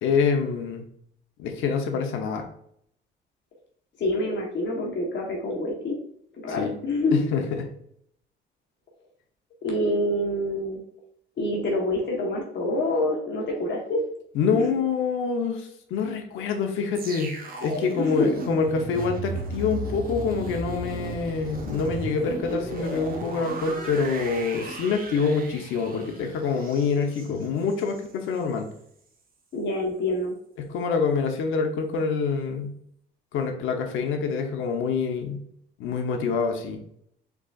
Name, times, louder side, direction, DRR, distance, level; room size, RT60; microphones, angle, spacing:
voice 1, 0.0-0.9 1.4-2.4 6.5-6.7 7.1-7.7 14.3-17.3 17.6-28.7 30.7-32.7 33.3-35.4 35.8-36.8, left 5 dB, 90° left, 4 dB, 0.8 m, -26 dB
voice 2, 4.0-6.0 6.4-7.2 9.6-10.8 11.4-14.0 14.5-14.6 18.0-18.3 29.5-30.3, left 1 dB, 65° left, 0 dB, 1.1 m, -26 dB
sound 1, 17.0-28.1 28.4-28.6, right 2 dB, 45° right, 1.0 m, -35 dB
4.7 x 3.8 x 2.4 m, 0.68 s
cardioid pair, 90°, 20 cm